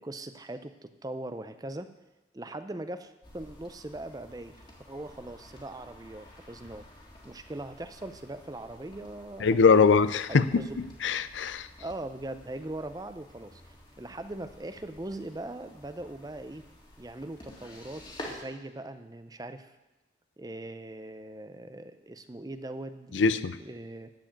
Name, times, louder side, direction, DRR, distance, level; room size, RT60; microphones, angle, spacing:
voice 1, 0.0-1.9 2.3-4.6 4.9-6.9 7.2-9.9 10.3-10.9 11.8-16.6 17.0-19.7 20.4-24.1, right 1 dB, 20° right, 10 dB, 0.5 m, -40 dB
sound 1, 3.2-18.4, left 1 dB, 25° left, 2.0 m, -50 dB
voice 2, 9.4-10.6 11.0-11.7 23.1-23.6, left 5 dB, 85° left, 13 dB, 0.5 m, -22 dB
13.5 x 4.9 x 8.9 m, 1.0 s
head